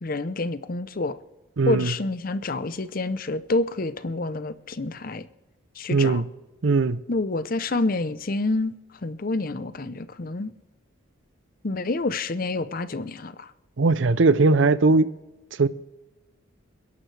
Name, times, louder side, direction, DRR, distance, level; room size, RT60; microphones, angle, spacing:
voice 1, 0.0-1.2 1.7-5.3 5.8-6.2 7.1-8.7 9.0-10.5 11.6-13.5, left 2 dB, 45° left, 0.7 m, -28 dB
voice 2, 1.6-1.9 5.9-6.3 6.6-7.0 13.8-15.1 15.6-15.7, right 3 dB, 65° right, 0.6 m, -19 dB
28.0 x 11.0 x 3.3 m
head